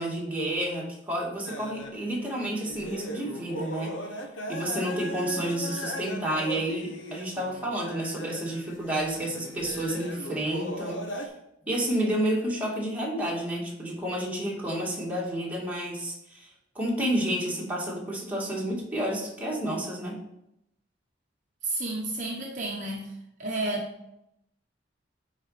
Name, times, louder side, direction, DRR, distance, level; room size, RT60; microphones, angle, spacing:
voice 1, 0.0-4.1 4.5-11.3 11.6-20.2, right 1 dB, 10° right, -5 dB, 2.2 m, -30 dB
sound 1, 1.4-11.3, equal, 75° left, 1.2 m, -38 dB
voice 2, 21.6-23.1 23.4-24.1, right 2 dB, 40° right, -1 dB, 1.0 m, -31 dB
9.9 x 4.2 x 4.9 m, 0.81 s
head